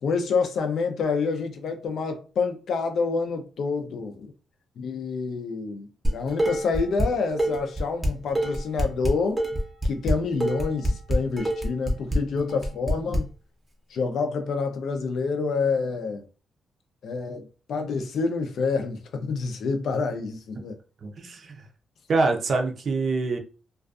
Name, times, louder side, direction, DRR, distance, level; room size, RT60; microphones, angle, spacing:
voice 1, 0.0-4.3 4.8-9.4 9.8-13.3 13.9-16.3 17.0-20.7, left 4 dB, 70° left, 0.5 m, -27 dB
Dishes pots and pans, 6.0-7.1 7.4-13.2, equal, 10° right, 0.7 m, -25 dB
voice 2, 21.0-21.6 22.1-23.4, right 3 dB, 50° right, 0.4 m, -25 dB
2.4 x 2.3 x 2.4 m
cardioid pair, 115°, 0 cm